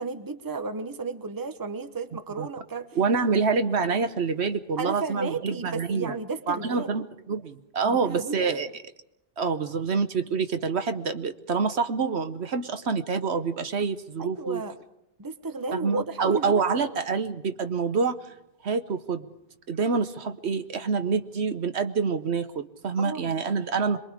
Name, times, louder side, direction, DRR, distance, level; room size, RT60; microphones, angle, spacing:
voice 1, 0.0-2.9 4.8-6.9 7.8-8.5 14.2-14.7 15.2-16.6 23.0-23.4, right 3 dB, 20° right, 10 dB, 0.9 m, -33 dB
voice 2, 2.9-6.2 6.5-8.7 9.4-14.6 15.7-18.2 18.6-19.3 19.7-24.0, right 5 dB, 70° right, 10 dB, 1.2 m, -26 dB
27.0 x 22.0 x 4.9 m, 0.86 s
omnidirectional pair, 1.2 m